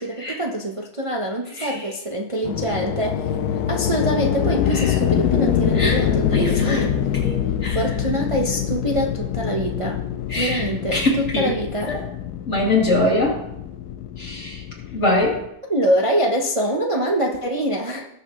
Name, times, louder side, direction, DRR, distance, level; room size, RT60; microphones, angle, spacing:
voice 1, 0.0-3.3 3.7-6.9 7.7-10.0 10.4-12.0 15.7-18.1, right 1 dB, 25° right, 0 dB, 0.7 m, -24 dB
sound 1, 2.4-15.5, left 9 dB, 70° left, 1.2 m, -24 dB
voice 2, 6.3-6.8 7.2-7.4 7.6-7.8 10.3-10.6 10.9-11.5 11.9-12.0 12.5-13.4 14.2-14.6 14.9-15.4, left 2 dB, 45° left, -3 dB, 2.9 m, -22 dB
19.0 x 6.8 x 3.1 m, 0.80 s
omnidirectional pair, 1.8 m